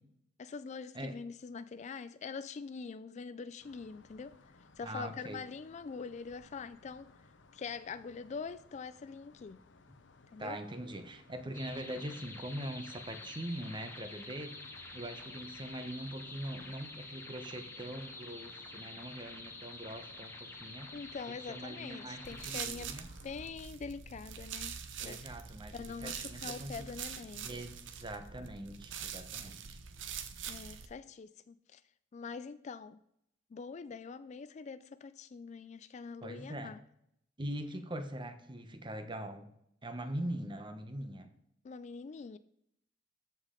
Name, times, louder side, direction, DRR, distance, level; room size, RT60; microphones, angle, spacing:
voice 1, 0.4-4.3 4.8-7.1 7.5-9.6 10.3-10.6 20.9-22.9 23.2-24.7 25.0-25.4 25.7-27.5 30.5-31.8 32.1-33.0 33.5-36.8 41.6-42.4, left 5 dB, 40° left, 14 dB, 0.3 m, -44 dB
sound 1, 3.6-23.5, left 3 dB, 75° left, 0.8 m, -60 dB
voice 2, 4.8-5.4 10.4-14.6 14.9-20.9 21.5-23.1 25.0-26.9 27.4-29.8 36.2-36.7 37.4-39.5 39.8-41.3, right 1 dB, 25° right, 8 dB, 1.0 m, -42 dB
sound 2, 11.5-22.5, left 2 dB, 15° left, 1.2 m, -48 dB
sound 3, 22.2-30.9, right 7 dB, 80° right, 0.8 m, -44 dB
13.5 x 5.4 x 3.8 m, 0.74 s
head